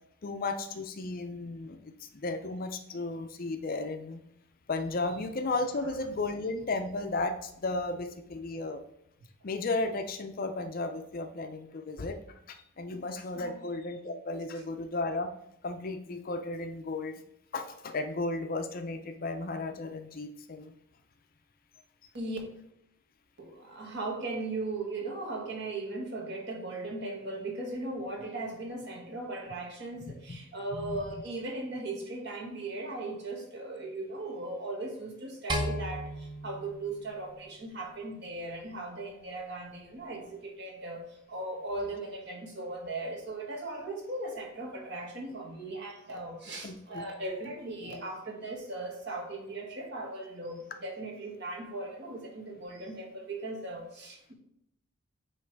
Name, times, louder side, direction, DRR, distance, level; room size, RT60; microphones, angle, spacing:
voice 1, 0.2-4.2 4.7-8.8 9.4-12.2 12.5-15.3 15.6-17.2 17.5-20.7 30.1-30.4 30.8-31.0 46.6-47.0, left 2 dB, 40° left, 7 dB, 0.5 m, -34 dB
voice 2, 23.4-54.3, right 2 dB, 50° right, 0 dB, 1.5 m, -38 dB
sound 1, 35.5-37.9, equal, 20° right, 0.7 m, -35 dB
8.2 x 3.1 x 4.6 m, 0.78 s
head